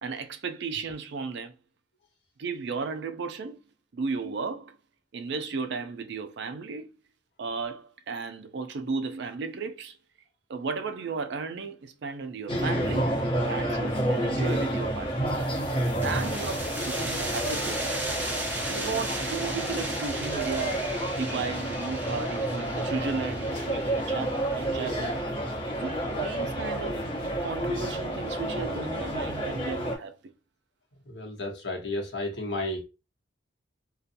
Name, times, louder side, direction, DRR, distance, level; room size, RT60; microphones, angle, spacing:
voice 1, 0.0-1.5 2.4-3.6 3.9-4.8 5.1-6.9 7.4-10.0 10.5-15.4 16.0-17.9 18.5-20.9 21.2-25.2 25.8-27.0 27.4-30.1, right 4 dB, 60° right, 0.4 m, -34 dB
sound 1, 12.5-30.0, right 1 dB, 25° left, 0.8 m, -30 dB
sound 2, 15.3-26.6, right 1 dB, 10° right, 0.6 m, -37 dB
voice 2, 31.1-32.8, left 2 dB, 60° left, 0.9 m, -32 dB
2.7 x 2.2 x 2.5 m
head